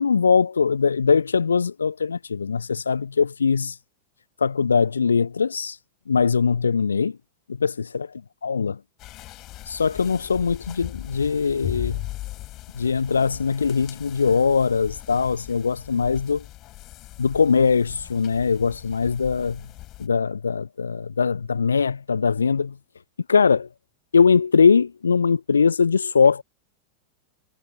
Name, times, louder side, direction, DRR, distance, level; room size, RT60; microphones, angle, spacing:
voice 1, 0.0-3.7 4.4-5.8 6.1-7.2 7.6-8.1 8.4-8.8 9.7-12.1 12.7-16.4 17.2-19.7 20.0-22.8 23.3-23.7 24.1-26.4, left 5 dB, 75° left, 0.6 m, -21 dB
sound 1, 9.0-20.1, left 17 dB, 35° left, 4.0 m, -39 dB
figure-of-eight pair, 90°, 0 cm